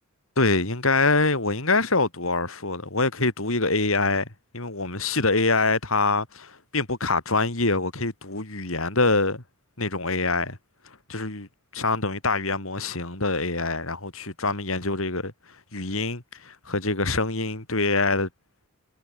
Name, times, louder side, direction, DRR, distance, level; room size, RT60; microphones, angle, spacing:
voice 1, 0.4-4.3 4.5-9.4 9.8-10.6 11.1-11.5 11.7-15.3 15.7-18.3, left 3 dB, 70° left, 4.2 m, -25 dB
head